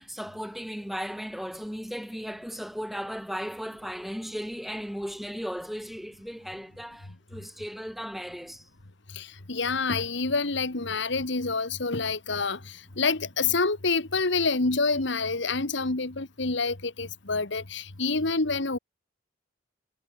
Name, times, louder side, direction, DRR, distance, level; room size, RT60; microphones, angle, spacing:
voice 1, 0.0-8.6, equal, ahead, 2.2 m, -36 dB
voice 2, 9.1-18.8, left 4 dB, 65° left, 1.8 m, -27 dB
head